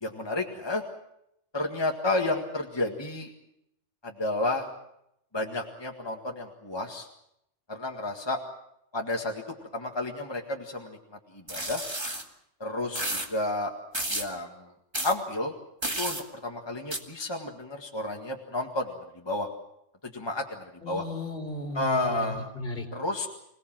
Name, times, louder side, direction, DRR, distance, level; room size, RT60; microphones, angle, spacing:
voice 1, 0.0-0.8 1.5-3.3 4.0-4.7 5.3-7.1 7.7-8.4 8.9-9.4 9.7-11.0 11.3-11.8 12.6-13.7 14.1-14.7 15.0-15.5 16.0-19.5 20.0-21.0 21.7-22.5 22.9-23.3, left 2 dB, 20° left, 1 dB, 1.9 m, -31 dB
sound 1, 11.5-12.2 12.9-13.3 13.9-14.3 14.9-15.1 15.8-16.2 16.9-17.0, right 1 dB, 20° right, 2.1 m, -31 dB
voice 2, 20.8-22.9, left 2 dB, 50° left, 2 dB, 4.1 m, -35 dB
26.0 x 18.0 x 7.6 m, 0.79 s
omnidirectional pair, 1.3 m